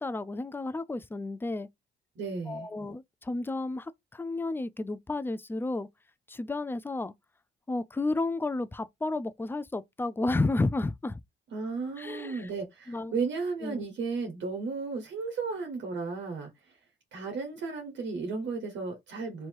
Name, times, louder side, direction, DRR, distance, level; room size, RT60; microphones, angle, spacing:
voice 1, 0.0-1.7 2.5-5.9 6.3-7.1 7.7-11.2 12.0-12.5 12.9-13.1 13.6-13.9, left 2 dB, 10° left, 0.4 m, -32 dB
voice 2, 2.2-2.7 11.5-16.5 17.1-19.5, right 4 dB, 65° right, 1.3 m, -34 dB
3.1 x 2.8 x 4.4 m
cardioid pair, 90°, 20 cm